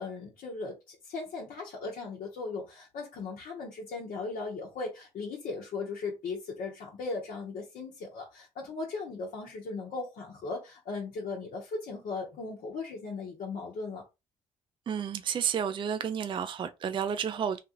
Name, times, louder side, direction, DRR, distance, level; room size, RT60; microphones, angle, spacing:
voice 1, 0.0-14.0, left 3 dB, 65° left, 1.0 m, -38 dB
voice 2, 14.9-17.6, right 8 dB, 35° right, 0.4 m, -31 dB
3.1 x 2.4 x 2.9 m
supercardioid pair, 65°, 15 cm